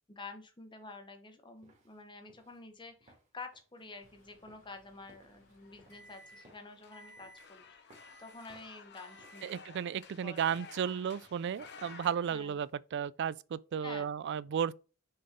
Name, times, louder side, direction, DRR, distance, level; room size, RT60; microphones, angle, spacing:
voice 1, 0.1-7.9 8.2-9.6 10.2-10.4 12.3-12.5 13.8-14.1, left 3 dB, 20° left, 1.0 m, -49 dB
sound 1, 1.6-12.8, right 1 dB, 30° right, 2.1 m, -66 dB
Microwave oven, 4.0-6.6 6.9-7.5 7.9-8.5 8.9-9.6, right 1 dB, 75° left, 3.0 m, -59 dB
sound 2, 5.6-12.1, left 6 dB, 50° left, 0.9 m, -54 dB
voice 2, 9.4-14.7, right 8 dB, 55° right, 0.3 m, -34 dB
6.5 x 4.0 x 3.6 m
head